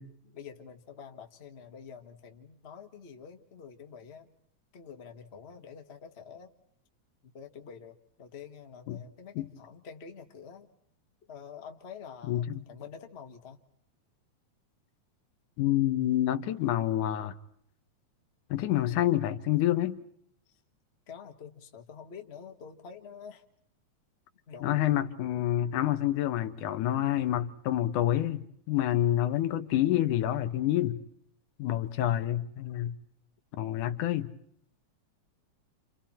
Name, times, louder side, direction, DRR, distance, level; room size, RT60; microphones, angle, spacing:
voice 1, 0.0-4.3 4.7-6.5 7.3-10.7 11.3-13.6 20.5-20.6 21.1-23.4 24.5-24.9, left 6 dB, 30° left, 1.4 m, -47 dB
voice 2, 12.3-12.6 15.6-17.3 18.5-20.0 24.6-31.0 31.6-33.0 33.6-34.3, left 13 dB, 85° left, 2.6 m, -28 dB
29.5 x 28.5 x 4.3 m
omnidirectional pair, 3.5 m